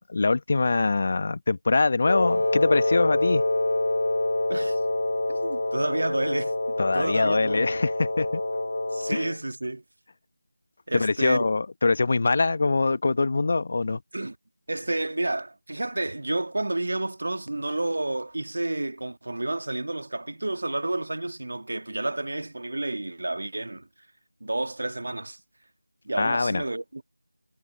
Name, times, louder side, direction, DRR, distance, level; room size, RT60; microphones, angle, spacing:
voice 1, 0.1-3.4 6.8-8.4 9.1-9.2 10.9-14.0 26.2-26.6, left 3 dB, 40° left, 1.1 m, -23 dB
Wind instrument woodwind instrument, 2.1-9.4, left 2 dB, 60° left, 1.2 m, -26 dB
voice 2, 4.5-4.8 5.3-7.7 8.9-9.8 10.9-11.4 14.1-14.4 14.7-23.9 24.4-25.4 26.0-27.0, right 2 dB, 60° right, 1.7 m, -30 dB
figure-of-eight pair, 170°, 0 cm